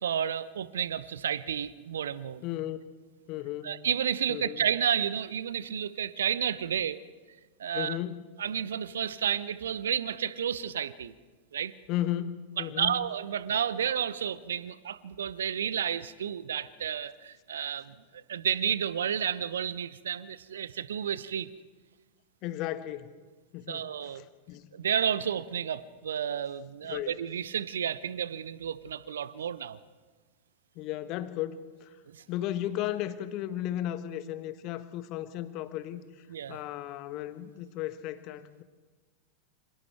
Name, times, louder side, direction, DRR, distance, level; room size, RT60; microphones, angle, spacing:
voice 1, 0.0-2.4 3.6-7.0 7.6-8.0 8.4-11.1 11.5-11.7 12.6-21.5 23.7-24.3 24.7-29.8 32.1-32.2 36.3-36.6, right 8 dB, 65° right, 18 dB, 0.8 m, -31 dB
voice 2, 2.4-2.8 3.3-3.8 4.3-4.6 7.7-8.2 11.9-13.0 22.4-23.1 23.5-24.7 26.8-27.1 30.7-31.9 32.3-36.0 36.5-38.6, left 13 dB, 40° left, 11 dB, 1.4 m, -35 dB
28.5 x 26.5 x 3.5 m, 1.4 s
figure-of-eight pair, 90°, 0 cm